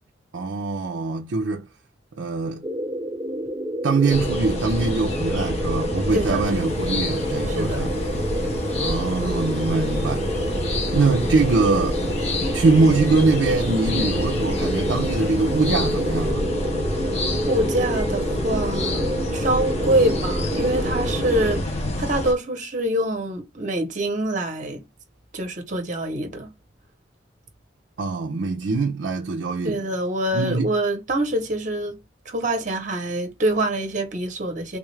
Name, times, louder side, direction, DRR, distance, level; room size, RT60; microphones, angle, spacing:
voice 1, 0.3-1.7 2.2-2.7 3.8-7.9 8.8-10.3 10.9-12.0 12.5-16.5 28.0-29.8 30.3-30.7, right 3 dB, 80° right, 0.5 m, -23 dB
sound 1, 2.6-21.6, equal, 20° right, 0.5 m, -28 dB
sound 2, 4.1-22.3, left 1 dB, 35° left, 0.8 m, -28 dB
voice 2, 6.1-6.6 7.5-7.9 17.5-24.8 25.3-26.5 29.6-32.0 32.3-34.8, right 1 dB, 40° right, 0.9 m, -25 dB
sound 3, 6.5-16.3, left 1 dB, 60° left, 1.0 m, -39 dB
3.5 x 2.4 x 3.1 m
head